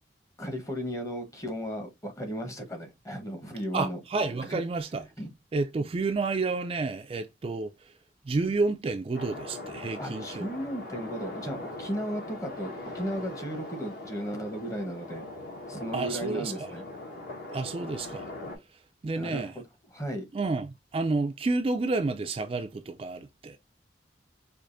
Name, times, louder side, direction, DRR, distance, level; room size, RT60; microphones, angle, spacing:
voice 1, 0.4-4.0 4.5-4.6 5.2-5.3 10.0-15.3 15.7-16.8 19.1-19.5 19.9-20.2, equal, 20° left, 0.9 m, -35 dB
voice 2, 3.7-5.0 5.5-7.9 8.3-10.6 15.9-16.7 17.5-18.3 18.7-19.6 20.3-23.6, right 3 dB, 30° right, 0.3 m, -30 dB
sound 1, 9.1-18.6, left 2 dB, 55° left, 1.3 m, -41 dB
4.7 x 2.5 x 2.5 m
head